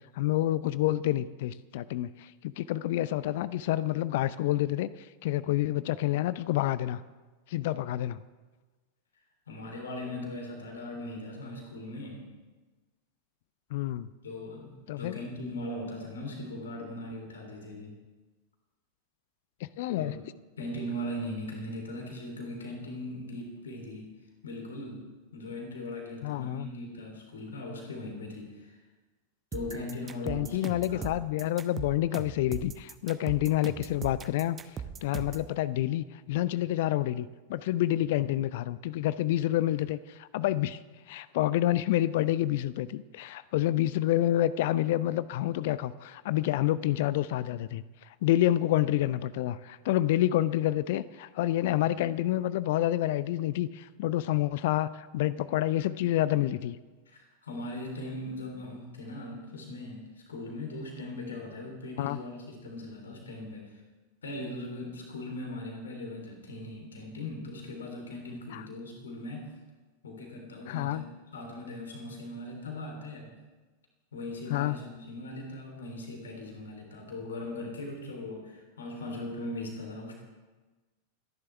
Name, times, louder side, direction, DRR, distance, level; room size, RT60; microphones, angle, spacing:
voice 1, 0.1-4.9 5.2-7.0 7.5-8.2 13.7-14.1 14.9-15.2 19.8-20.1 26.2-26.7 30.3-34.6 35.0-40.8 41.1-47.8 48.2-56.8 62.0-62.2 68.5-68.6 70.7-71.0 74.5-74.8, left 14 dB, 50° left, 17 dB, 0.5 m, -28 dB
voice 2, 9.5-12.3 14.2-17.9 20.0-20.2 20.6-24.1 24.4-28.8 29.5-31.1 57.1-60.0 60.3-63.8 64.2-69.6 70.0-71.0 71.3-73.3 74.1-80.2, left 1 dB, 70° left, 1 dB, 3.6 m, -39 dB
sound 1, 29.5-35.5, right 7 dB, 25° right, 1.0 m, -39 dB
29.5 x 11.0 x 3.5 m, 1.3 s
figure-of-eight pair, 90°, 0 cm